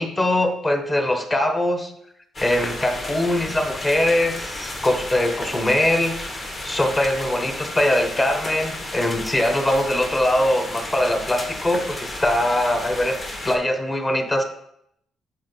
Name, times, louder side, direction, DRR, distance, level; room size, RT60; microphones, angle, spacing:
voice 1, 0.0-1.9 2.4-6.1 6.6-13.2 13.4-14.4, left 1 dB, 25° left, 6 dB, 1.2 m, -22 dB
sound 1, 2.3-13.6, left 1 dB, 40° left, 1.7 m, -33 dB
7.4 x 4.7 x 4.0 m, 0.75 s
cardioid pair, 90°, 0 cm